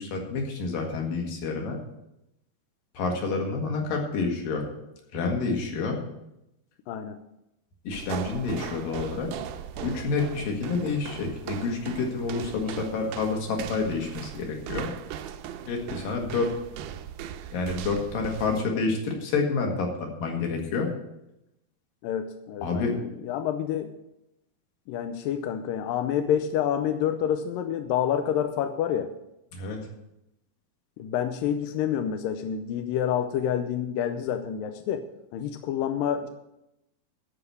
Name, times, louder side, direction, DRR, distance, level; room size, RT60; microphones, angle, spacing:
voice 1, 0.0-1.8 2.9-4.7 5.1-6.0 7.8-9.3 9.8-14.9 15.7-16.5 17.5-20.9 22.6-22.9 29.5-29.8, left 4 dB, 65° left, 1 dB, 3.4 m, -28 dB
voice 2, 6.9-7.2 22.0-23.9 24.9-29.1 31.0-35.0 35.3-36.3, left 9 dB, 80° left, 7 dB, 2.1 m, -28 dB
sound 1, 7.9-18.7, right 10 dB, 80° right, 2.4 m, -39 dB
13.0 x 5.0 x 8.2 m, 0.86 s
omnidirectional pair, 4.5 m